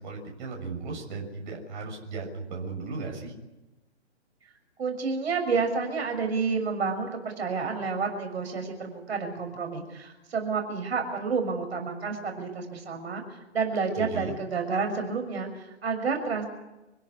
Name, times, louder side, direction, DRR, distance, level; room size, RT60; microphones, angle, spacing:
voice 1, 0.0-3.3 13.9-14.4, right 4 dB, 40° right, 1 dB, 6.5 m, -36 dB
voice 2, 4.8-7.1 7.4-13.2 13.5-16.5, right 5 dB, 60° right, 4 dB, 6.6 m, -29 dB
26.5 x 17.0 x 9.8 m, 1.0 s
hypercardioid pair, 145°, 35 cm